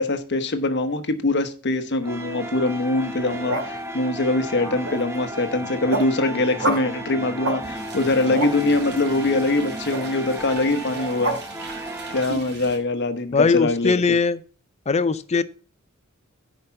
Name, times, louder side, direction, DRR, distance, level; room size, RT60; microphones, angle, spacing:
voice 1, 0.0-11.4 12.1-13.9, left 2 dB, 55° left, 1.0 m, -23 dB
sound 1, 2.0-12.2, right 1 dB, 15° right, 1.1 m, -34 dB
sound 2, 3.2-3.8 4.5-5.2 5.6-6.1 6.6-6.9 7.4-7.6 8.0-8.5 9.9-10.0 10.9-11.4, right 2 dB, 75° right, 2.1 m, -28 dB
sound 3, 7.6-12.8, right 3 dB, 55° right, 2.2 m, -40 dB
voice 2, 13.3-14.4 14.9-15.4, left 4 dB, 30° left, 0.5 m, -20 dB
9.9 x 5.1 x 5.8 m
head